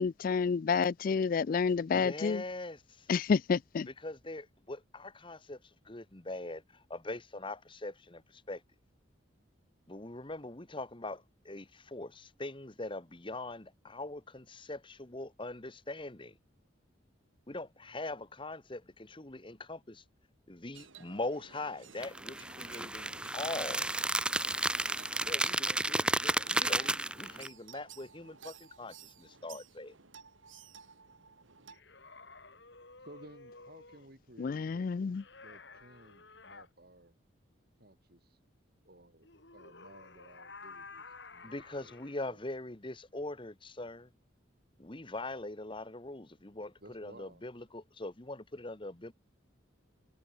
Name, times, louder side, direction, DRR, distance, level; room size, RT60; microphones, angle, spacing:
voice 1, 0.0-2.4 3.1-3.9 34.4-35.2, left 5 dB, 45° left, 0.3 m, -29 dB
voice 2, 1.9-3.1 3.9-8.6 9.9-16.3 17.5-20.0 20.5-23.9 25.3-29.9 41.4-44.1 44.8-49.1, left 2 dB, 25° left, 1.4 m, -42 dB
sound 1, 20.7-31.8, right 6 dB, 80° right, 2.7 m, -55 dB
sound 2, 22.0-27.5, right 1 dB, 5° right, 0.6 m, -32 dB
sound 3, 31.7-34.1 35.1-36.7 39.2-42.2, left 4 dB, 60° left, 4.4 m, -52 dB
voice 3, 33.1-37.2 37.8-38.4 38.8-39.3 39.5-42.4 46.8-47.4, right 1 dB, 50° right, 3.8 m, -57 dB
head